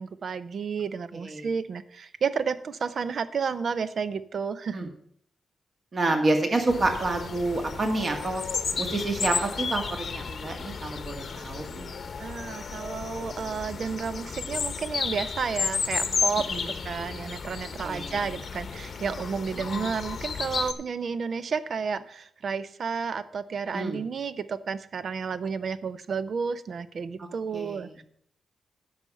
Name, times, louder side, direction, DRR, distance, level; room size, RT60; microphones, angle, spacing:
voice 1, 0.0-4.9 6.1-6.2 12.2-16.4 16.8-28.0, right 5 dB, 55° right, 14 dB, 0.6 m, -31 dB
voice 2, 1.1-1.5 4.7-4.9 5.9-8.4 8.8-11.9 16.5-16.6 17.8-18.1 19.7-19.9 23.7-24.0 27.5-27.9, right 2 dB, 40° right, 4 dB, 1.9 m, -28 dB
sound 1, 6.7-20.7, left 5 dB, 50° left, 0.8 m, -33 dB
10.5 x 5.7 x 7.2 m, 0.66 s
wide cardioid pair, 135°, 0 cm